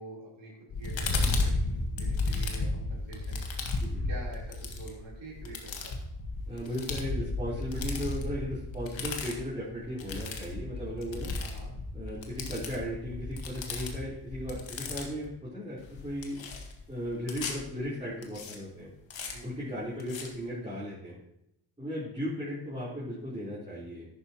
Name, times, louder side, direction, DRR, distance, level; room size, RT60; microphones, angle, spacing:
voice 1, 0.0-3.5 4.1-5.9 11.4-11.7 19.3-19.5, right 2 dB, 60° right, -6 dB, 3.8 m, -46 dB
sound 1, 0.7-15.3 15.8-17.6 18.2-18.6 19.1-19.3 20.0-20.3, left 3 dB, 65° left, 1.9 m, -34 dB
voice 2, 6.5-11.3 11.9-16.5 16.9-18.9 19.4-21.2 21.8-24.1, equal, 15° right, -10 dB, 3.9 m, -36 dB
11.0 x 9.0 x 3.0 m, 0.82 s
cardioid pair, 65°, 49 cm